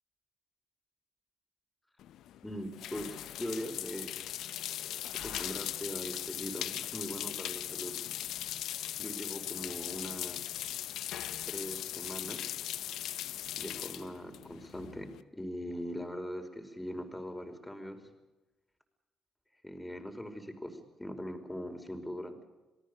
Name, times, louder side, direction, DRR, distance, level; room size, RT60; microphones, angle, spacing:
sound 1, 2.0-15.2, left 12 dB, 75° left, 0.8 m, -39 dB
voice 1, 2.4-4.2 5.2-8.0 9.0-10.5 11.5-12.5 13.5-18.1 19.6-22.4, equal, 5° left, 5 dB, 5.0 m, -41 dB
28.0 x 18.5 x 6.8 m, 1.1 s
cardioid pair, 80°, 0 cm